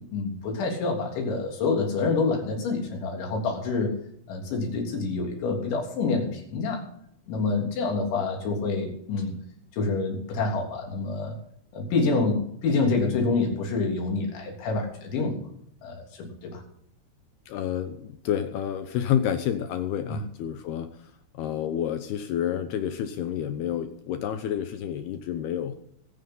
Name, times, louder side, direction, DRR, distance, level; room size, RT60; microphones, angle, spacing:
voice 1, 0.0-4.0 4.3-6.8 7.3-9.3 9.7-11.4 11.7-15.5 15.8-16.6 20.1-20.2, left 3 dB, 65° left, 1 dB, 5.6 m, -27 dB
voice 2, 17.5-20.9 21.3-25.7, left 9 dB, 80° left, 9 dB, 2.3 m, -29 dB
22.5 x 9.4 x 3.9 m, 0.70 s
omnidirectional pair, 5.8 m